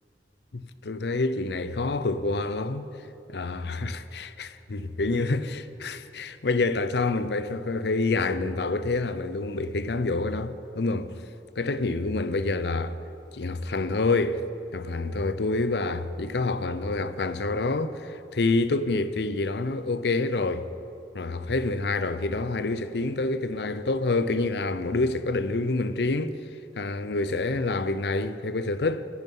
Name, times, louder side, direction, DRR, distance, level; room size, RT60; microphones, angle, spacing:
voice 1, 0.5-2.9 3.3-11.1 11.6-13.0 13.3-14.4 14.7-20.7 21.1-26.3 26.8-29.1, left 3 dB, 65° left, 0.7 m, -27 dB
23.5 x 11.0 x 5.5 m
head